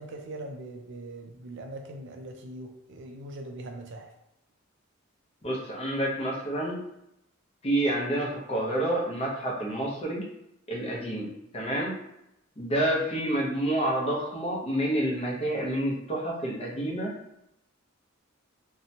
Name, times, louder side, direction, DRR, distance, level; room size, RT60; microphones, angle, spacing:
voice 1, 0.0-4.1, right 1 dB, 60° right, 0.4 m, -41 dB
voice 2, 5.4-6.8 7.6-10.2 10.7-11.3 11.5-11.9 12.6-17.1, right 1 dB, 30° left, 0.7 m, -28 dB
2.8 x 2.1 x 2.7 m
head